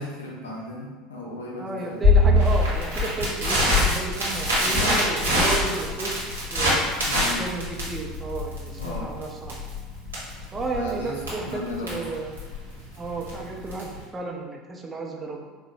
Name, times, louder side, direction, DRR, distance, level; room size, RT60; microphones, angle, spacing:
voice 1, 0.0-2.0 4.7-4.9 7.1-7.4 8.8-9.1 10.7-11.1 11.4-12.0, left 2 dB, 75° left, -3 dB, 0.7 m, -35 dB
voice 2, 1.6-6.8 7.3-9.6 10.5-12.4 12.9-15.4, right 3 dB, 20° right, 0 dB, 0.6 m, -33 dB
Crackle, 2.0-14.0, left 1 dB, 80° right, 1.2 m, -24 dB
4.6 x 2.2 x 3.0 m, 1.3 s
figure-of-eight pair, 70°, 0 cm